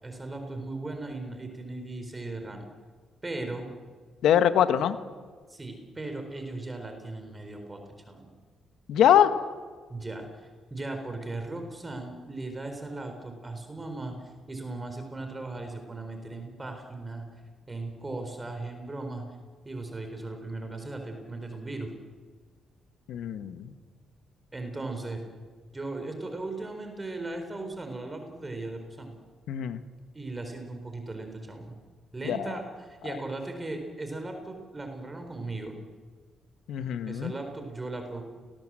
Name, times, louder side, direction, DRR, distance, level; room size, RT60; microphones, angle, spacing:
voice 1, 0.0-2.7 3.2-3.7 5.5-7.8 8.1-8.3 9.9-17.3 17.7-19.2 19.6-21.9 24.5-25.2 25.7-29.2 30.1-31.7 32.1-35.7 37.1-38.2, right 2 dB, 20° right, 5 dB, 4.3 m, -37 dB
voice 2, 4.2-5.0 8.9-9.3 23.1-23.7 29.5-29.8 32.2-32.5 36.7-37.3, left 10 dB, 80° left, 10 dB, 1.4 m, -23 dB
30.0 x 19.0 x 7.7 m, 1.5 s
cardioid pair, 90°, 0 cm